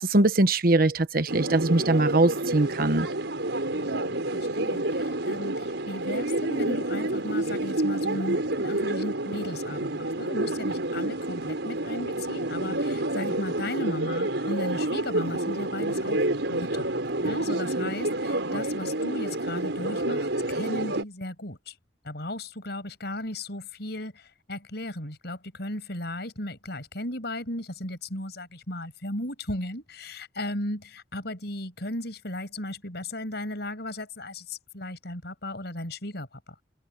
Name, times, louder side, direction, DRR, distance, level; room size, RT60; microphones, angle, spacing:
voice 1, 0.0-3.1, right 2 dB, 55° right, 1.2 m, -22 dB
sound 1, 1.3-21.0, right 1 dB, 75° right, 5.2 m, -29 dB
voice 2, 3.7-16.2 16.5-16.9 17.2-21.8 22.0-36.6, left 1 dB, 65° left, 7.2 m, -36 dB
head